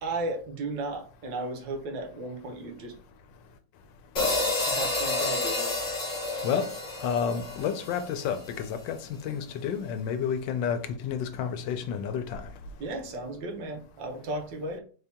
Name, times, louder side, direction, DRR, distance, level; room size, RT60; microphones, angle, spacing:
voice 1, 0.0-2.9 4.7-5.8 12.8-14.8, right 2 dB, 80° right, 1.5 m, -35 dB
sound 1, 4.2-8.5, left 2 dB, 45° left, 1.6 m, -30 dB
voice 2, 7.0-12.4, left 7 dB, 85° left, 1.3 m, -30 dB
4.1 x 2.8 x 3.5 m
omnidirectional pair, 2.0 m